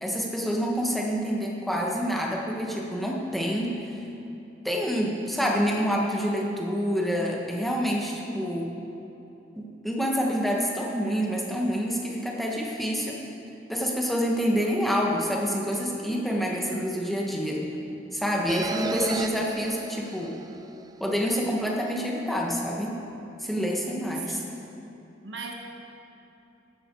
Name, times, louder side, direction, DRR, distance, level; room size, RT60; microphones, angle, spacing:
voice 1, 0.0-3.9 4.6-8.7 9.5-13.2 13.7-17.6 18.1-20.4 21.0-23.0 23.4-24.4, equal, ahead, -2 dB, 1.5 m, -27 dB
sound 1, 18.5-21.0, right 3 dB, 20° right, 0.3 m, -34 dB
voice 2, 24.2-24.6 25.2-25.5, right 5 dB, 70° right, 1 dB, 1.3 m, -38 dB
14.0 x 11.5 x 4.7 m, 2.9 s
head